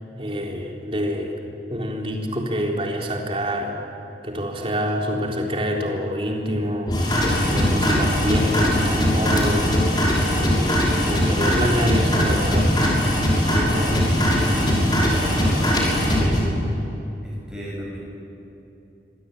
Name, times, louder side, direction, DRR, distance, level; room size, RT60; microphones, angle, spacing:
voice 1, 0.2-1.3 1.7-3.7 4.2-10.0 10.3-12.7 13.3-14.1 14.5-14.7 16.2-16.7, equal, 30° right, 0 dB, 4.0 m, -27 dB
sound 1, 6.9-16.4, equal, 25° left, 6.6 m, -20 dB
voice 2, 14.5-16.4 17.2-18.0, equal, 5° right, -4 dB, 7.0 m, -35 dB
27.0 x 22.0 x 9.3 m, 2.9 s
head